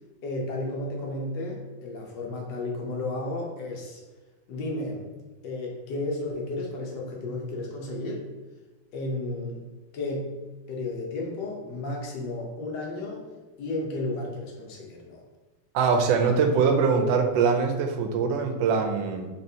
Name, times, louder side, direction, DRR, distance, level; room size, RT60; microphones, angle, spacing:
voice 1, 0.2-4.0 4.5-5.0 5.4-8.2 8.9-9.7 9.9-10.3 10.7-13.3 13.6-15.2, left 2 dB, 80° left, 0 dB, 1.5 m, -33 dB
voice 2, 15.7-19.3, right 5 dB, 85° right, 5 dB, 1.3 m, -23 dB
4.2 x 3.1 x 2.7 m, 1.2 s
omnidirectional pair, 1.9 m